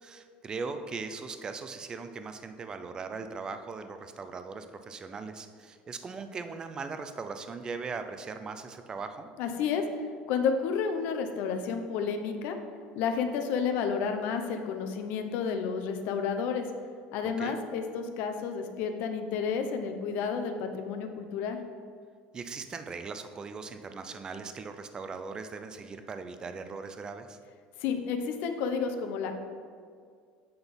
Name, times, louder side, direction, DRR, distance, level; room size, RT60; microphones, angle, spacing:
voice 1, 0.0-9.3 17.2-17.6 22.3-27.4, right 4 dB, 25° right, 8 dB, 0.5 m, -39 dB
voice 2, 9.4-9.8 10.3-12.6 12.9-16.7 17.1-21.6 27.8-29.3, left 6 dB, 65° left, 6 dB, 0.8 m, -31 dB
8.0 x 4.0 x 5.2 m, 2.1 s
cardioid pair, 135°, 3 cm